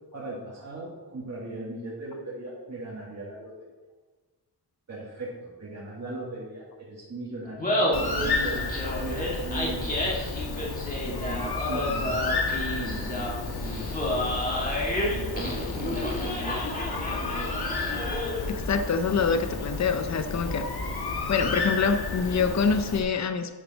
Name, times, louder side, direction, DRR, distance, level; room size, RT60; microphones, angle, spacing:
voice 1, 0.1-3.5 4.9-10.5 11.0-14.3 15.1-16.9, right 2 dB, 40° right, -6 dB, 2.0 m, -39 dB
Laughter, 7.4-18.5, left 1 dB, 20° left, 2.0 m, -30 dB
Bird, 7.9-23.0, left 3 dB, 60° left, 1.6 m, -32 dB
voice 2, 18.5-20.7 21.3-23.5, left 5 dB, 40° left, 8 dB, 0.7 m, -25 dB
10.5 x 8.8 x 4.1 m, 1.3 s
wide cardioid pair, 165°, 41 cm